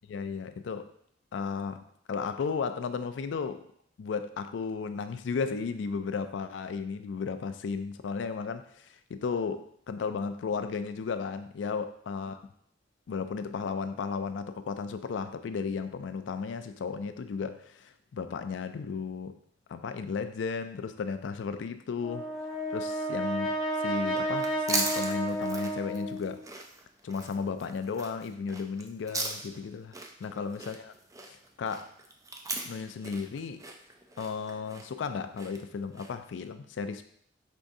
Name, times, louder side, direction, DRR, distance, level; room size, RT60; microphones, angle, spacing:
voice 1, 0.1-0.9 1.3-3.6 4.0-12.4 13.1-19.4 19.7-22.3 22.7-26.4 27.0-29.9 30.2-30.9 31.3-31.9 32.7-33.6 34.2-37.0, left 5 dB, 80° left, 10 dB, 0.4 m, -34 dB
Brass instrument, 22.0-26.4, right 1 dB, ahead, 1.1 m, -32 dB
sound 1, 24.0-36.3, right 3 dB, 20° right, 0.4 m, -38 dB
5.2 x 3.6 x 2.6 m, 0.67 s
head